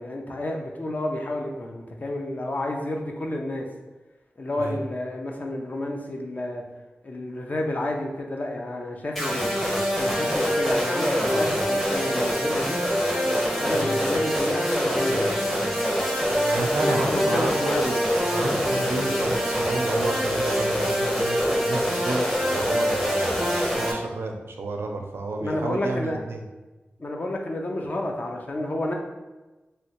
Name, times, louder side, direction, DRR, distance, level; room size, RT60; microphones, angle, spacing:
voice 1, 0.0-3.7 4.4-6.6 7.0-9.6 10.0-12.8 13.5-15.2 16.8-17.9 25.4-26.2 27.0-28.9, left 1 dB, 40° left, 1 dB, 0.5 m, -30 dB
sound 1, 9.2-23.9, equal, 5° left, 0.7 m, -24 dB
voice 2, 16.4-26.4, right 2 dB, 85° right, 2 dB, 0.5 m, -31 dB
3.2 x 2.7 x 3.0 m, 1.1 s
wide cardioid pair, 90°, 4 cm